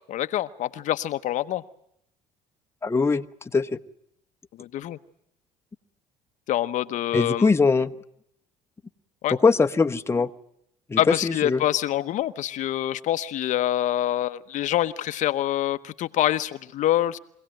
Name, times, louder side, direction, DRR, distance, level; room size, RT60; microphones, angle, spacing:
voice 1, 0.1-1.6 4.6-5.0 6.5-7.5 9.2-9.4 11.0-17.2, left 13 dB, 60° left, 10 dB, 0.9 m, -26 dB
voice 2, 2.8-3.3 3.5-3.7 7.1-7.9 9.3-10.3 10.9-11.6, left 4 dB, 20° left, 6 dB, 1.0 m, -21 dB
25.0 x 17.0 x 9.0 m, 0.75 s
supercardioid pair, 90°, 14 cm